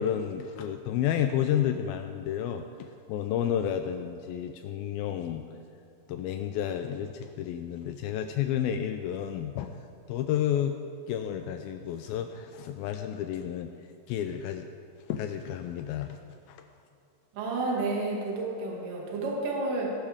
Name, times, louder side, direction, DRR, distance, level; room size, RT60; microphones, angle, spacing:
voice 1, 0.0-5.4 6.1-9.7 10.1-10.8 11.1-13.7 14.1-14.7 15.1-16.2 16.5-16.6, left 10 dB, 85° left, 7 dB, 2.2 m, -31 dB
voice 2, 17.3-19.9, right 2 dB, 55° right, -2 dB, 3.4 m, -30 dB
19.0 x 11.5 x 3.5 m, 2.5 s
omnidirectional pair, 4.7 m